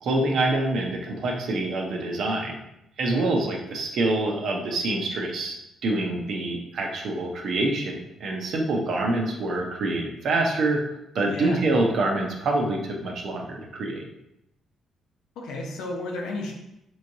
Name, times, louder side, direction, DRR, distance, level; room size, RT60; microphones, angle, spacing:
voice 1, 0.0-2.6 3.0-5.6 5.8-10.8 11.1-14.1, right 2 dB, 65° right, 1 dB, 0.7 m, -26 dB
voice 2, 3.0-3.3 11.3-11.6 15.4-16.5, left 2 dB, 90° left, 0 dB, 0.7 m, -33 dB
3.5 x 3.1 x 2.7 m, 0.84 s
cardioid pair, 90°, 0 cm